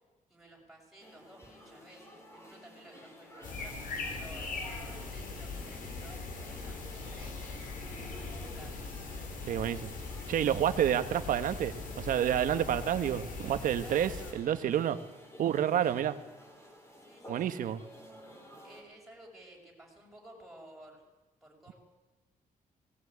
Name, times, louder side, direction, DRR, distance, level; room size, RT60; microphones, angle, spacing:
voice 1, 0.3-7.4 7.9-8.9 13.8-14.4 15.8-16.0 17.0-17.7 18.6-21.0 21.4-21.7, right 1 dB, ahead, -3 dB, 6.6 m, -55 dB
sound 1, 1.0-18.8, equal, 20° left, 4.7 m, -52 dB
sound 2, 3.4-14.3, left 3 dB, 75° left, 4.2 m, -41 dB
voice 2, 9.5-9.9 10.3-15.0 15.4-16.1 17.3-17.8, right 10 dB, 75° right, 10 dB, 1.3 m, -29 dB
18.5 x 17.5 x 9.6 m, 1.2 s
cardioid pair, 135°, 14 cm